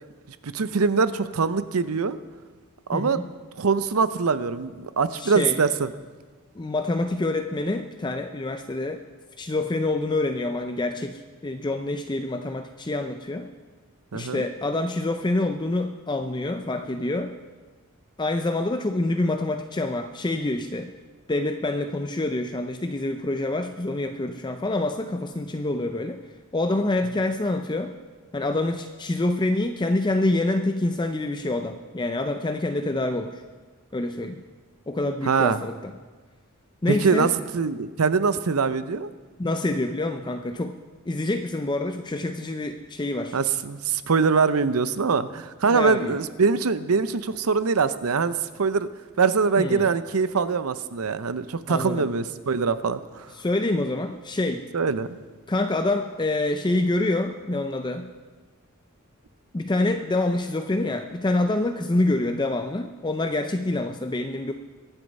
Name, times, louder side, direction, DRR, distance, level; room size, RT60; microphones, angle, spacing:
voice 1, 0.3-2.2 2.9-3.2 3.6-5.9 14.1-14.4 35.2-35.6 36.9-39.1 43.3-48.9 49.2-53.3 54.7-55.2, right 5 dB, 90° right, 13 dB, 0.7 m, -23 dB
voice 2, 2.9-3.3 5.2-5.6 6.6-9.0 9.4-13.5 14.1-17.3 18.2-20.9 21.3-26.2 26.5-27.9 28.3-33.4 33.9-34.4 34.9-35.9 36.8-37.3 39.4-40.8 41.1-43.4 45.7-46.2 49.6-49.9 51.7-52.1 53.4-54.6 55.5-58.1 59.5-64.5, left 2 dB, 20° left, 6 dB, 0.5 m, -26 dB
22.5 x 8.1 x 5.4 m, 1.4 s
head